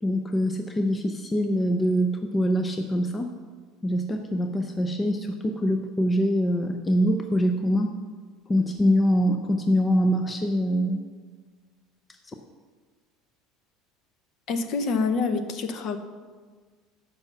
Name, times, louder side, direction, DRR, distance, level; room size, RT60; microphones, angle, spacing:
voice 1, 0.0-3.3 3.8-7.9 8.5-11.1, equal, 15° left, 5 dB, 0.5 m, -24 dB
voice 2, 14.5-16.0, left 4 dB, 40° left, 9 dB, 0.8 m, -26 dB
11.0 x 5.6 x 7.2 m, 1.5 s
cardioid pair, 160°, 0 cm